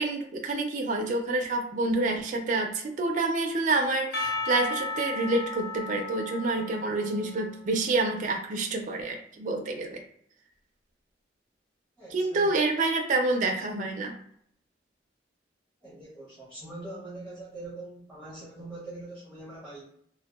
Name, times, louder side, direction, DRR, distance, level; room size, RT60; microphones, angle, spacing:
voice 1, 0.0-10.0 12.1-14.1, right 2 dB, 45° right, 2 dB, 0.4 m, -28 dB
Percussion, 4.1-8.0, left 3 dB, 60° left, 0.5 m, -35 dB
voice 2, 12.0-12.5 15.8-19.9, right 2 dB, 5° left, -8 dB, 0.7 m, -43 dB
2.5 x 2.1 x 2.3 m, 0.66 s
head